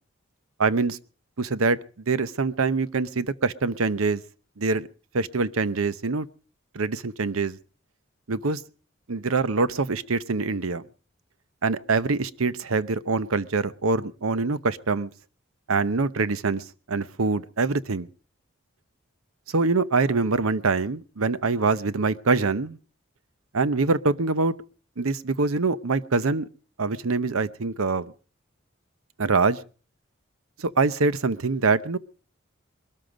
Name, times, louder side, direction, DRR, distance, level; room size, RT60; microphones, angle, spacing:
voice 1, 0.6-1.0 1.4-1.8 2.1-4.2 4.6-4.9 5.1-6.3 6.7-7.6 8.3-8.6 9.1-10.8 11.6-15.1 15.7-18.1 19.5-22.8 23.5-24.5 25.0-26.5 26.8-28.1 29.2-29.6 30.6-32.0, right 3 dB, 90° right, 0.8 m, -24 dB
21.5 x 13.0 x 5.1 m
head